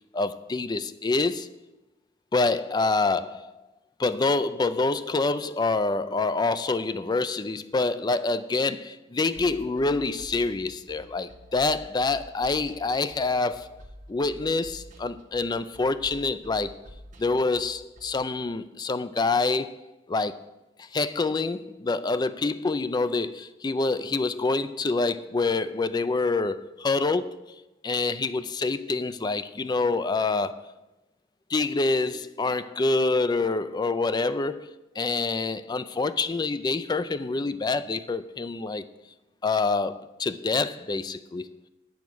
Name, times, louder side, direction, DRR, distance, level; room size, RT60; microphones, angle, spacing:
voice 1, 0.1-1.5 2.3-3.6 4.0-13.8 14.1-16.7 17.2-19.7 20.1-20.4 20.8-30.7 31.5-38.8 39.4-41.6, left 3 dB, 20° left, 0.3 m, -26 dB
sound 1, 9.3-18.2, equal, 40° right, 1.3 m, -48 dB
8.4 x 7.0 x 6.1 m
head